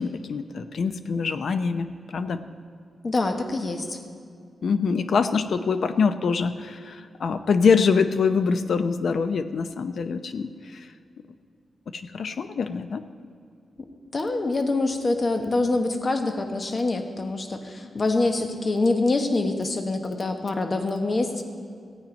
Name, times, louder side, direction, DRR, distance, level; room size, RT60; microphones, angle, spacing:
voice 1, 0.0-2.4 4.6-10.9 11.9-13.0, left 5 dB, 65° left, 10 dB, 0.6 m, -24 dB
voice 2, 3.0-4.0 14.1-21.4, left 2 dB, 35° left, 6 dB, 1.1 m, -25 dB
16.0 x 8.6 x 5.3 m, 2.3 s
wide cardioid pair, 115°, 0 cm